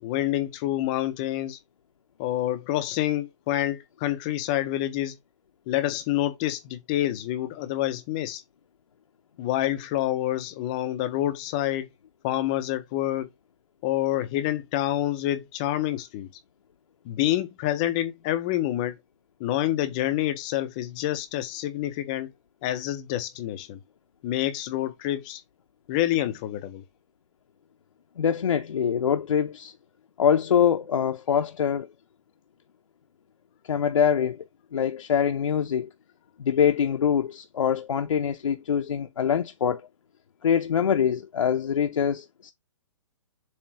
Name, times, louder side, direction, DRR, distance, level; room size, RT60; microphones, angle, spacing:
voice 1, 0.0-1.6 2.2-5.2 5.7-8.4 9.4-11.9 12.2-13.3 13.8-16.3 17.0-19.0 19.4-22.3 22.6-23.8 24.2-25.4 25.9-26.8, left 13 dB, 15° left, 0.4 m, -27 dB
voice 2, 28.2-29.7 30.2-31.9 33.6-35.9 36.4-39.8 40.4-42.5, left 8 dB, 80° left, 0.7 m, -24 dB
7.3 x 2.8 x 4.6 m
hypercardioid pair, 170°, 16 cm